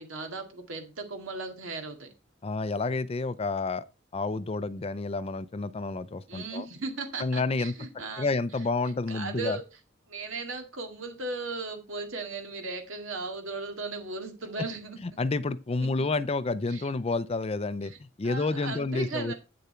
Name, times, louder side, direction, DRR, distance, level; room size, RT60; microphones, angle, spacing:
voice 1, 0.0-2.1 6.3-8.3 9.1-9.7 10.1-15.0 16.7-16.8 17.8-18.0 18.2-19.3, right 3 dB, 85° right, 2.1 m, -37 dB
voice 2, 2.4-3.8 4.1-6.7 7.2-7.7 8.2-9.6 15.0-17.9 18.2-19.3, left 3 dB, 30° left, 0.5 m, -29 dB
8.7 x 6.7 x 4.4 m
head